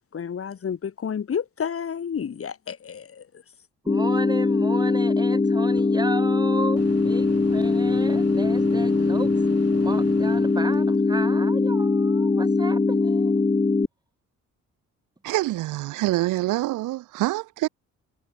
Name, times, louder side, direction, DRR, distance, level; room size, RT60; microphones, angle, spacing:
voice 1, 0.1-3.3, left 7 dB, 50° left, 3.8 m, -30 dB
voice 2, 3.8-9.3 9.8-13.5, right 2 dB, 15° right, 6.4 m, -35 dB
sound 1, 3.9-13.9, left 3 dB, 20° left, 2.2 m, -21 dB
Microwave oven, 5.8-5.9 6.8-11.0, right 8 dB, 55° right, 3.1 m, -40 dB
voice 3, 15.2-17.7, right 17 dB, 90° right, 1.2 m, -25 dB
cardioid pair, 90°, 30 cm